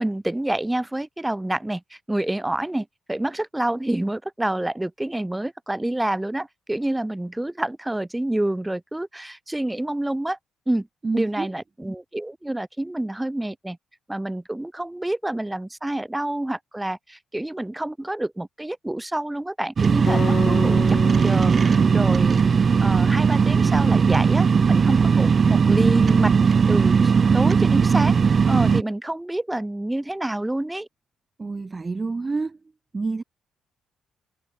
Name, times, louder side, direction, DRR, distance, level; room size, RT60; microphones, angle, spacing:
voice 1, 0.0-10.4 10.7-10.9 11.1-13.8 14.1-22.4 22.8-30.9, right 1 dB, 10° right, 2.1 m, -28 dB
voice 2, 11.0-11.5 31.4-32.6 32.9-33.2, right 3 dB, 25° right, 1.2 m, -28 dB
sound 1, 19.8-28.8, right 6 dB, 40° right, 0.4 m, -18 dB
Acoustic guitar, 20.1-23.3, left 5 dB, 40° left, 3.8 m, -32 dB
cardioid pair, 90°, 0 cm